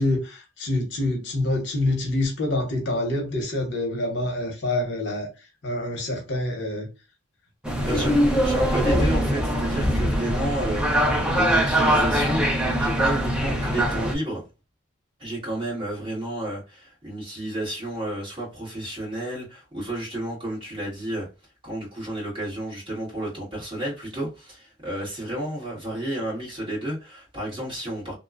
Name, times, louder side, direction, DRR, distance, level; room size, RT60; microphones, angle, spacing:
voice 1, 0.0-5.3 5.6-6.9 7.8-8.1, left 1 dB, 60° left, 0.9 m, -26 dB
sound 1, 7.6-14.1, equal, 5° right, 0.4 m, -22 dB
voice 2, 7.9-14.5 15.2-21.3 21.6-28.2, right 1 dB, 25° right, 1.5 m, -31 dB
2.8 x 2.3 x 2.3 m
head